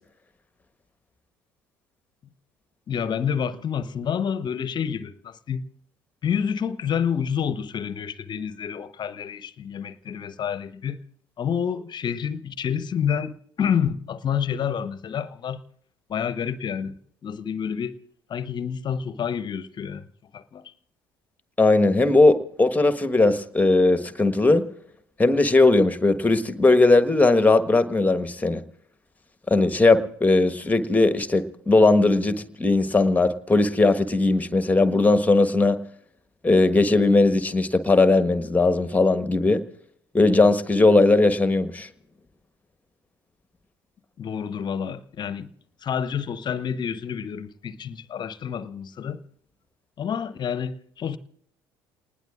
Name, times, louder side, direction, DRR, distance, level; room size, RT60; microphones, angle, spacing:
voice 1, 2.9-5.7 6.2-11.0 11.4-15.6 16.1-18.0 18.3-20.0 20.3-20.7 44.2-45.5 45.8-49.2 50.0-51.2, left 7 dB, 40° left, 0.9 m, -28 dB
voice 2, 21.6-24.6 25.2-28.6 29.5-35.8 36.4-39.6 40.1-41.9, left 2 dB, 15° left, 1.3 m, -19 dB
29.0 x 20.0 x 2.5 m
figure-of-eight pair, 55°, 12 cm